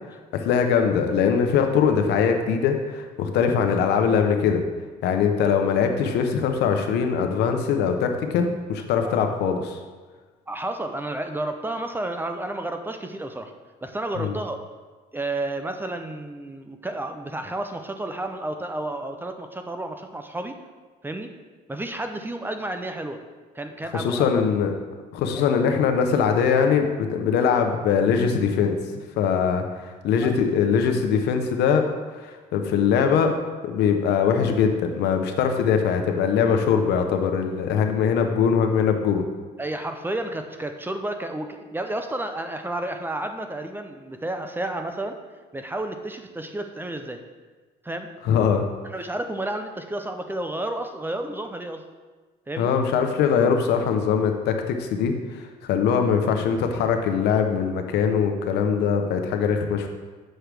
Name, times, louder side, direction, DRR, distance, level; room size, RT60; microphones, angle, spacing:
voice 1, 0.1-4.6 5.0-9.8 14.2-14.3 23.9-24.7 25.1-28.8 29.2-31.8 32.1-33.3 33.6-39.2 48.3-48.6 52.6-59.9, left 6 dB, 80° left, 5 dB, 0.8 m, -22 dB
voice 2, 10.5-13.5 13.8-14.6 15.1-20.6 21.0-21.3 21.7-23.2 23.5-24.4 25.4-25.6 30.2-30.3 39.6-45.2 45.5-47.2 47.8-48.1 48.8-51.8 52.5-52.7, right 1 dB, 10° right, 6 dB, 0.5 m, -31 dB
7.8 x 6.2 x 3.4 m, 1.4 s
cardioid pair, 110°, 17 cm